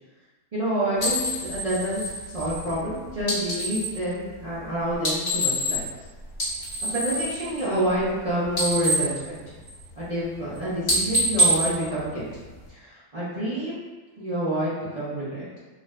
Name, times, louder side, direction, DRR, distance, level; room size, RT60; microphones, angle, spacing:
voice 1, 0.5-5.8 6.9-9.4 10.0-12.3 12.7-13.8 14.2-15.6, right 1 dB, 45° right, -11 dB, 0.5 m, -28 dB
sound 1, 1.0-4.0 4.9-6.0 6.3-8.2 8.4-10.0 10.4-10.6 10.8-12.7, right 1 dB, 30° left, 1.1 m, -26 dB
2.6 x 2.4 x 3.1 m, 1.3 s
omnidirectional pair, 1.6 m